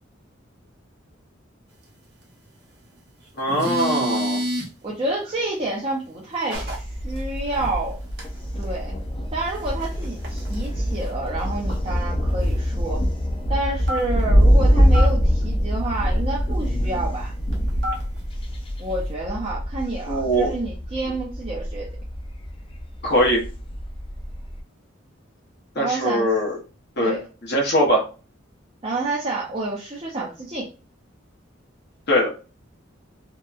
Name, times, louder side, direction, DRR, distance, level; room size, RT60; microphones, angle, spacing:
voice 1, 3.4-4.4 20.1-20.5 23.0-23.4 25.7-26.6 27.0-27.2 27.4-28.0 32.1-32.3, equal, 55° left, -2 dB, 0.9 m, -21 dB
sound 1, 3.4-4.7 6.5-6.8 7.2-7.3 7.5-7.8 8.2-8.3 8.6-8.7 9.5-10.7 11.1-11.2 11.4-11.5 11.7-11.8 12.4-12.8 13.8-14.4 14.9-15.1 17.5-18.2, equal, 55° right, 0.8 m, -28 dB
voice 2, 4.8-8.0 8.6-8.9 9.3-13.0 13.5-17.3 18.8-21.9 25.8-26.3 27.0-27.2 28.8-30.7, right 2 dB, 30° right, -5 dB, 0.5 m, -29 dB
Thunder, 6.5-24.6, equal, 25° left, 0.4 m, -24 dB
2.7 x 2.1 x 2.3 m, 0.34 s
head